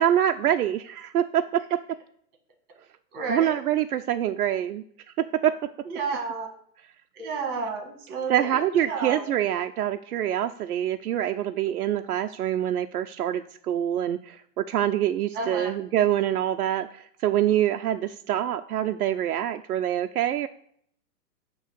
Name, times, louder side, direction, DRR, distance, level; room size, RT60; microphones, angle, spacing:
voice 1, 0.0-1.8 3.3-4.8 5.2-5.5 8.3-20.5, right 11 dB, 65° right, 7 dB, 0.6 m, -25 dB
voice 2, 3.1-3.5 5.8-6.5 7.1-9.3 15.3-15.7, right 4 dB, 20° right, 3 dB, 1.7 m, -31 dB
9.0 x 3.1 x 6.5 m, 0.65 s
hypercardioid pair, 155°, 49 cm